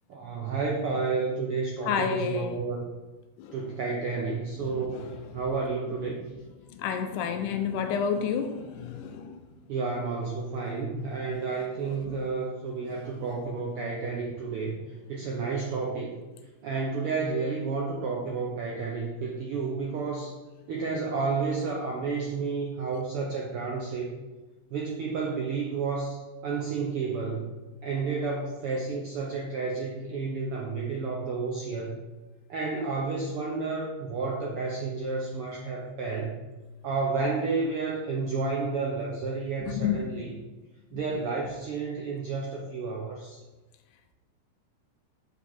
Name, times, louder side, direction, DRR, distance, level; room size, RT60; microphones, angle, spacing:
voice 1, 0.1-2.8 3.5-6.2 9.7-14.8 15.1-16.1 16.6-20.3 20.7-24.1 24.7-27.5 27.8-32.0 32.5-36.4 36.8-40.3 40.9-43.4, right 4 dB, 80° right, -2 dB, 1.3 m, -31 dB
voice 2, 1.8-2.6 3.4-3.6 4.6-5.4 6.7-9.4 11.8-12.2 39.6-40.0, left 7 dB, 85° left, 7 dB, 2.1 m, -31 dB
6.2 x 5.6 x 4.3 m, 1.2 s
omnidirectional pair, 3.6 m